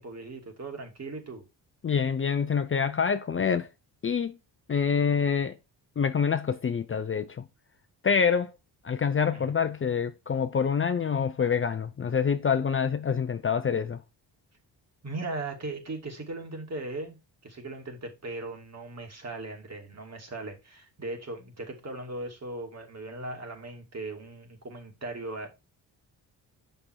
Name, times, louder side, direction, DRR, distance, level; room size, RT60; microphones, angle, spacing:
voice 1, 0.0-1.4 9.3-9.5 15.0-17.2 17.4-25.5, right 2 dB, 35° right, 2.6 m, -38 dB
voice 2, 1.8-3.7 4.0-4.4 4.7-5.6 6.0-7.4 8.0-8.5 8.8-14.0, left 6 dB, 30° left, 0.6 m, -26 dB
6.6 x 5.7 x 4.6 m
cardioid pair, 85°, 43 cm